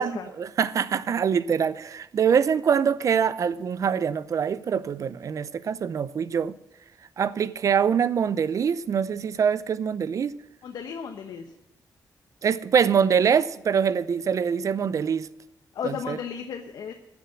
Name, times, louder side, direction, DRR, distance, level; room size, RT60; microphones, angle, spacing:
voice 1, 0.4-6.6 7.2-10.3 12.4-15.3 15.8-16.2, right 7 dB, 50° right, 0.6 m, -24 dB
voice 2, 10.6-11.5 15.7-16.9, left 7 dB, 75° left, 1.0 m, -34 dB
13.5 x 7.2 x 7.6 m
wide cardioid pair, 140°, 7 cm